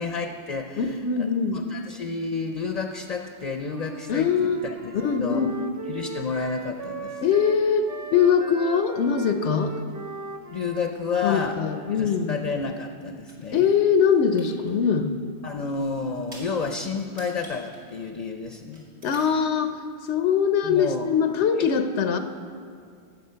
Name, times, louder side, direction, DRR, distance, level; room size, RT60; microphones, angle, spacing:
voice 1, 0.0-0.8 1.5-5.4 5.9-7.2 10.5-11.6 12.0-13.7 15.4-18.9 20.6-21.1 21.6-21.7, left 4 dB, 45° left, 5 dB, 0.6 m, -30 dB
voice 2, 0.8-1.6 4.1-4.6 4.9-5.7 7.2-9.7 11.2-12.4 13.5-15.1 19.0-19.7 20.0-22.2, left 6 dB, 90° left, 8 dB, 1.0 m, -22 dB
Wind instrument woodwind instrument, 3.6-12.0, right 3 dB, 30° right, 0.3 m, -39 dB
sound 1, 12.7-13.7 14.1-14.7 15.1-15.2 15.6-15.7 16.1-18.5 18.7-19.3, right 1 dB, 75° right, 3.0 m, -48 dB
17.5 x 7.1 x 5.6 m, 2.3 s
omnidirectional pair, 1.1 m